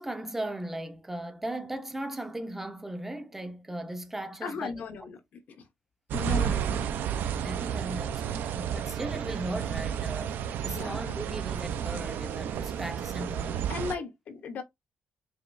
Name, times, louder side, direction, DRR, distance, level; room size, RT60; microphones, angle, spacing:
voice 1, 0.0-4.7 6.3-6.5 7.1-13.7, right 1 dB, 10° right, 0.5 m, -37 dB
voice 2, 4.4-5.7 6.1-6.9 10.6-11.2 13.7-14.6, left 5 dB, 55° left, 0.8 m, -37 dB
sound 1, 6.1-14.0, right 9 dB, 70° right, 0.5 m, -32 dB
4.8 x 3.0 x 2.5 m
cardioid pair, 165°, 3 cm